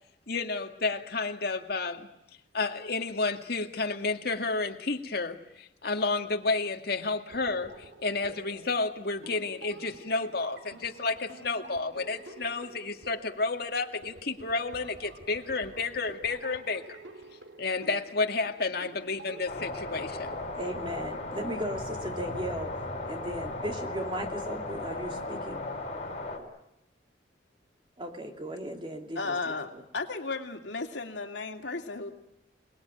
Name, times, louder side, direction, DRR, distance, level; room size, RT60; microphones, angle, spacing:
voice 1, 0.3-2.1 2.5-17.0 17.6-20.4, left 3 dB, 60° left, 4 dB, 2.1 m, -31 dB
sound 1, 7.3-21.3, right 2 dB, 85° right, 2.2 m, -49 dB
sound 2, 19.5-26.4, left 2 dB, 35° left, 6.1 m, -36 dB
voice 2, 20.5-25.7 28.0-29.8, right 1 dB, 30° right, 4 dB, 2.8 m, -37 dB
voice 3, 29.2-32.1, left 3 dB, 85° left, 3 dB, 2.7 m, -34 dB
28.0 x 20.0 x 9.2 m, 0.87 s
head